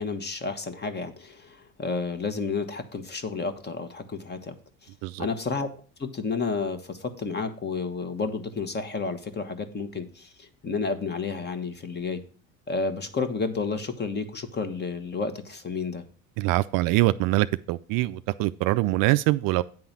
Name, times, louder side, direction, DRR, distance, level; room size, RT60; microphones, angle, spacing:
voice 1, 0.0-4.5 5.2-5.7 6.0-12.2 12.7-16.0, left 4 dB, 25° left, 1.2 m, -31 dB
voice 2, 16.4-19.6, right 18 dB, 55° right, 0.4 m, -24 dB
9.2 x 3.8 x 7.2 m
hypercardioid pair, 80°, 41 cm